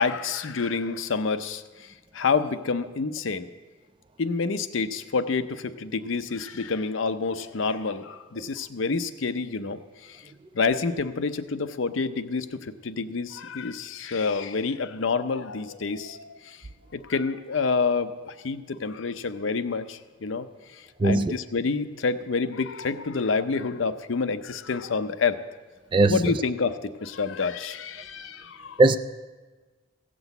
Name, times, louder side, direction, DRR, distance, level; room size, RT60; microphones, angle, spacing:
voice 1, 0.0-3.5 4.2-10.3 10.5-16.6 16.9-25.4 26.1-28.8, left 4 dB, 75° left, 11 dB, 0.6 m, -28 dB
voice 2, 21.0-21.3 25.9-26.2 28.8-29.0, right 2 dB, 25° right, 12 dB, 0.3 m, -18 dB
16.0 x 6.2 x 8.0 m, 1.3 s
head